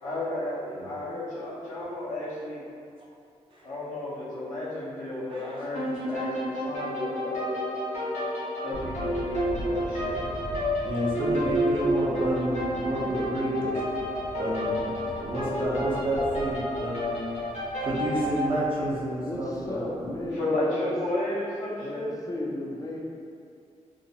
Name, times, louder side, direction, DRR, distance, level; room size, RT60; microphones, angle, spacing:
voice 1, 0.0-2.6 3.6-7.6 8.6-10.3 20.3-22.1, left 1 dB, 90° left, -9 dB, 0.8 m, -33 dB
voice 2, 5.3-6.2 10.8-13.8 14.4-20.1, right 1 dB, 45° right, -7 dB, 0.7 m, -31 dB
sound 1, 5.7-18.6, equal, 70° left, 1.0 m, -30 dB
sound 2, 8.7-20.4, equal, 85° right, 0.9 m, -42 dB
voice 3, 19.2-20.9 21.8-23.0, left 1 dB, 30° left, -3 dB, 0.5 m, -34 dB
2.5 x 2.1 x 2.7 m, 2.4 s
cardioid pair, 90°, 13 cm